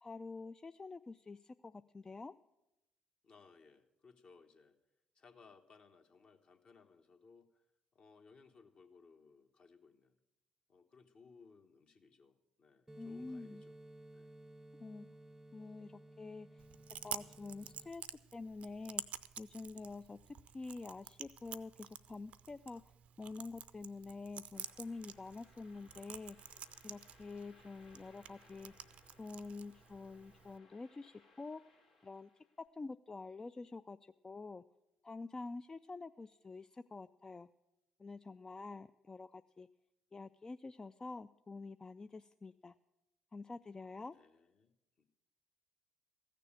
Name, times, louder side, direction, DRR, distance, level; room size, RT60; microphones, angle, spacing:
voice 1, 0.0-2.3 13.0-13.7 14.8-15.1 15.5-16.6 17.0-19.0 19.4-26.5 26.8-28.7 29.2-31.6 32.0-34.6 35.0-37.5 38.0-39.7 40.1-42.7 43.3-44.1, left 3 dB, 25° left, 11 dB, 0.3 m, -47 dB
voice 2, 3.2-4.8 5.1-7.6 7.9-10.2 10.7-13.8 14.1-14.3 44.1-45.0, left 4 dB, 50° left, 4 dB, 1.3 m, -63 dB
sound 1, 12.9-17.9, right 1 dB, 15° right, 0.6 m, -56 dB
Chewing mastication, 16.6-30.6, right 9 dB, 60° right, 0.5 m, -50 dB
sound 2, 24.5-32.6, left 3 dB, 80° left, 2.4 m, -67 dB
14.5 x 6.7 x 8.6 m, 0.92 s
hypercardioid pair, 50°, 3 cm